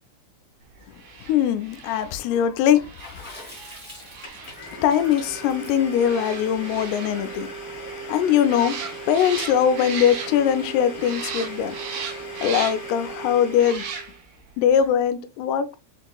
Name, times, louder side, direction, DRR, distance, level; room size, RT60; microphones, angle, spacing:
sound 1, 0.9-10.7 11.0-13.0 13.5-14.4 14.7-14.9, right 6 dB, 70° right, 3.0 m, -37 dB
voice 1, 1.2-3.2 4.8-7.5 8.1-8.8 9.1-11.8 12.4-13.9 14.6-15.8, left 9 dB, 85° left, 2.5 m, -21 dB
Water / Splash splatter, 3.0-7.4, left 1 dB, 20° right, 0.5 m, -45 dB
Domestic sounds home sounds, 4.2-14.2, right 2 dB, 60° left, 1.1 m, -37 dB
6.6 x 2.8 x 2.3 m
omnidirectional pair, 4.7 m